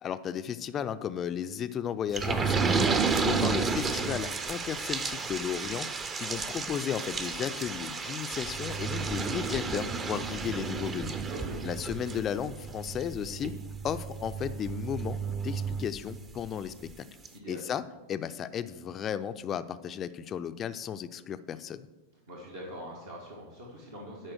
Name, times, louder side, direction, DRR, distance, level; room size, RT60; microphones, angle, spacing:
voice 1, 0.0-2.9 3.2-11.2 11.6-13.5 13.8-17.1 17.5-17.8 18.1-21.9, left 9 dB, 25° left, 12 dB, 0.4 m, -34 dB
sound 1, 2.1-16.5 16.9-17.0 17.2-17.3, right 5 dB, 20° right, 0.6 m, -32 dB
voice 2, 11.3-11.7 17.3-17.6 22.3-24.3, equal, 65° right, -3 dB, 1.5 m, -43 dB
11.0 x 4.4 x 6.2 m, 1.1 s
figure-of-eight pair, 90°, 0 cm